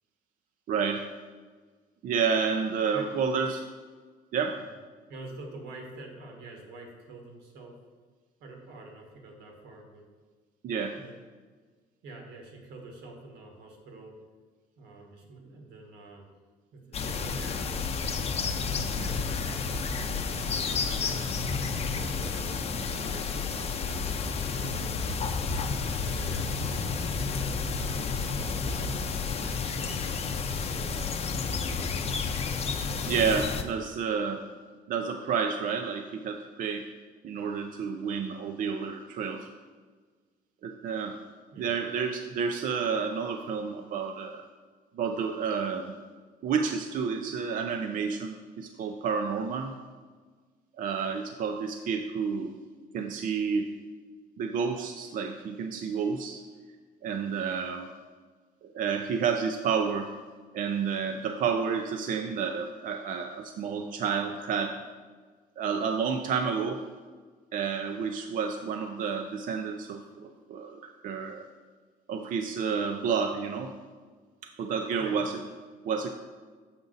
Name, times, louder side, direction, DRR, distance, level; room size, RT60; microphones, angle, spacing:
voice 1, 0.7-1.0 2.0-3.7 4.3-4.6 10.6-11.0 33.1-34.4 34.9-36.9 37.2-39.5 40.6-41.2 41.6-44.5 45.0-45.9 46.4-49.7 50.8-52.5 52.9-53.7 54.4-56.4 57.0-57.9 58.6-60.1 60.5-64.7 65.6-66.8 67.5-71.5 72.1-73.7 74.6-75.4 75.8-76.1, right 6 dB, 55° right, 5 dB, 0.5 m, -30 dB
voice 2, 5.1-7.7 8.4-10.1 10.9-11.1 12.0-14.1 14.8-16.2 16.7-18.5 19.0-21.2 21.7-25.0 25.9-28.8 29.4-30.9 41.5-41.7 75.0-75.2, right 2 dB, 85° right, 1 dB, 1.6 m, -47 dB
sound 1, 16.9-33.6, left 5 dB, 35° left, 0.6 m, -31 dB
7.1 x 5.2 x 3.9 m, 1.5 s
cardioid pair, 110°, 17 cm